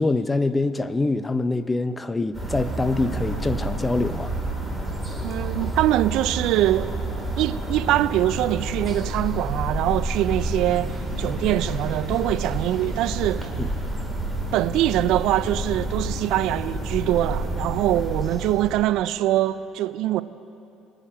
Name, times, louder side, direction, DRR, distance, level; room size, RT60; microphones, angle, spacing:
voice 1, 0.0-4.3 13.6-13.7, left 3 dB, 20° left, 0.7 m, -24 dB
sound 1, 2.3-19.0, right 1 dB, ahead, 2.6 m, -29 dB
voice 2, 5.2-7.1 7.4-13.5 14.5-20.2, right 14 dB, 70° right, 0.4 m, -23 dB
21.5 x 9.6 x 2.8 m
hypercardioid pair, 65°, 0 cm